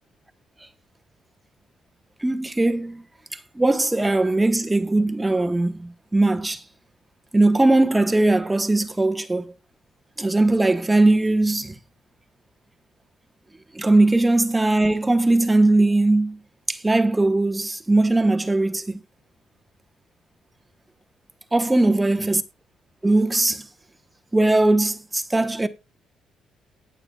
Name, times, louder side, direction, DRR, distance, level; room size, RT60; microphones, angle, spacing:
voice 1, 2.2-3.0 3.6-6.6 7.3-9.4 10.2-11.7 13.7-16.4 16.7-19.0 21.5-22.4 23.0-23.6 24.3-25.7, right 2 dB, 15° right, 1.1 m, -19 dB
19.0 x 6.9 x 2.4 m
cardioid pair, 90°, 0 cm